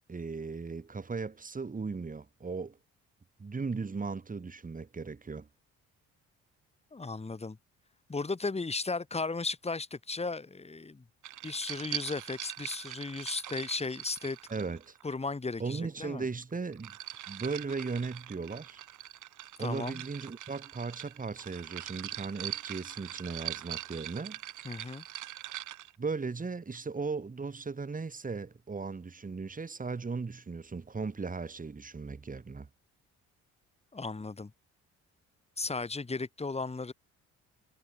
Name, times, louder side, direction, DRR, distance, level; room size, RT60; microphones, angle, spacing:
voice 1, 0.1-2.8 3.4-5.5 14.5-15.0 15.6-16.9 17.3-18.8 19.6-24.4 26.0-32.7, right 4 dB, 25° right, 3.6 m, -37 dB
voice 2, 6.9-7.6 8.1-11.0 11.4-14.4 15.0-16.2 19.6-20.0 24.6-25.0 33.9-34.5 35.6-36.9, left 3 dB, 20° left, 2.8 m, -35 dB
sound 1, 11.2-15.1 16.4-25.9, right 13 dB, 80° right, 4.3 m, -42 dB
cardioid pair, 90°, 30 cm